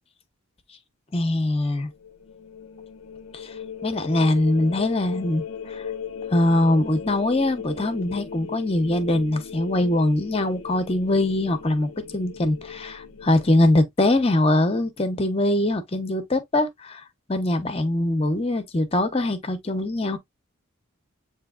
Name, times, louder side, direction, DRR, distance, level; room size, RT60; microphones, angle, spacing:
voice 1, 1.1-1.9 3.3-3.5 3.8-5.9 6.3-17.0 17.3-20.2, left 1 dB, 30° left, 0.7 m, -22 dB
sound 1, 1.8-13.7, left 7 dB, 80° left, 0.6 m, -37 dB
7.9 x 2.8 x 2.3 m
head